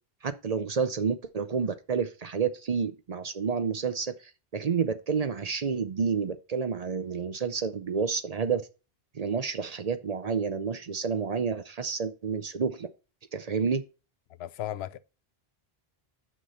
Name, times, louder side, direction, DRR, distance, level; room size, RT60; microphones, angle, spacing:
voice 1, 0.2-4.1 4.5-8.6 9.1-12.9 13.3-13.8, right 6 dB, 45° right, 0.6 m, -29 dB
voice 2, 14.4-15.0, left 12 dB, 90° left, 0.8 m, -35 dB
6.2 x 6.0 x 5.4 m
omnidirectional pair, 1.0 m